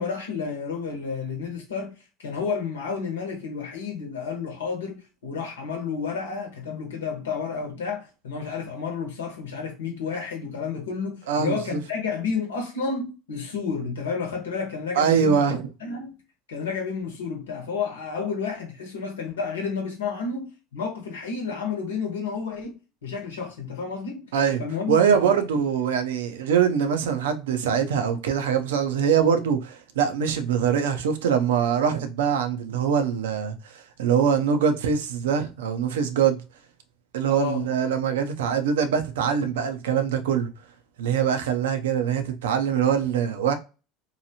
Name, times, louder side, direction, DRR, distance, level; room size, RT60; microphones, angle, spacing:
voice 1, 0.0-1.9 2.2-15.4 15.8-16.1 16.5-22.7 23.0-24.3 24.6-25.4 37.3-37.7, left 5 dB, 85° left, 0.9 m, -31 dB
voice 2, 11.3-11.8 15.0-15.7 24.3-24.6 24.9-36.4 37.1-40.5 41.0-43.5, right 7 dB, 80° right, 0.5 m, -23 dB
2.8 x 2.3 x 2.7 m
hypercardioid pair, 85°, 0 cm